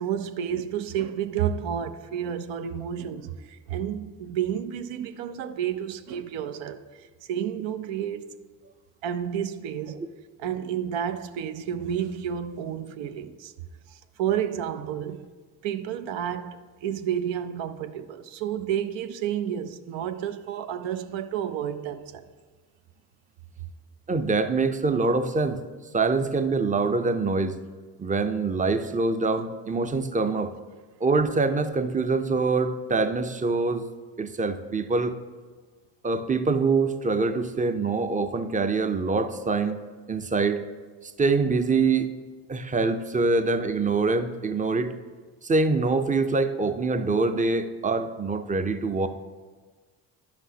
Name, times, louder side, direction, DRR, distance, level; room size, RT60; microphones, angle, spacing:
voice 1, 0.0-8.2 9.0-10.0 10.4-13.5 13.9-15.2 15.6-22.2, right 9 dB, 80° right, 0.6 m, -31 dB
voice 2, 24.1-25.6 25.9-27.6 28.0-30.5 31.0-33.8 34.2-35.2 36.0-39.8 40.1-40.6 41.0-42.1 42.5-44.9 45.4-49.1, right 3 dB, 20° right, 0.5 m, -24 dB
11.0 x 6.0 x 2.8 m
supercardioid pair, 70°, 45 cm